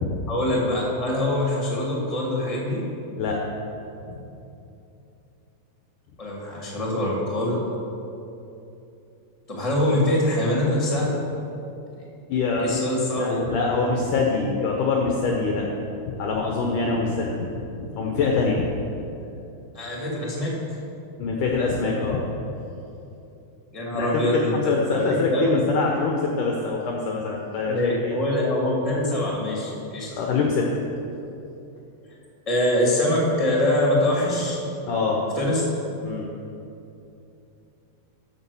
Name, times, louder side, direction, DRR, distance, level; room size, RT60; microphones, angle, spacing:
voice 1, 0.3-2.8 6.2-7.7 9.5-11.1 12.6-13.4 19.7-20.6 23.7-24.5 24.9-25.0 25.3-25.6 27.7-30.1 32.4-34.6 35.2-35.6, left 1 dB, 20° left, -4 dB, 0.9 m, -24 dB
voice 2, 12.3-12.8 13.1-15.7 16.1-18.8 21.2-22.2 23.9-28.2 30.1-30.7 34.9-35.2 36.0-36.3, left 4 dB, 80° left, 0 dB, 1.8 m, -24 dB
13.5 x 6.1 x 7.0 m, 2.8 s
omnidirectional pair, 4.9 m